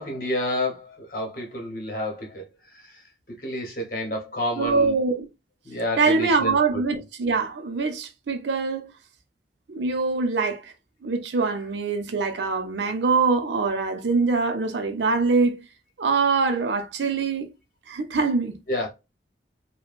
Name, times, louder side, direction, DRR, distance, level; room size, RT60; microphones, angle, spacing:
voice 1, 0.0-2.4 2.7-3.0 3.4-4.9 5.6-6.8 18.7-18.9, left 1 dB, 50° left, 1.1 m, -29 dB
voice 2, 4.6-5.3 6.0-8.9 9.7-10.7 11.0-15.6 16.0-17.5 17.9-18.6, right 4 dB, 75° right, 0.5 m, -23 dB
3.0 x 2.1 x 2.4 m
head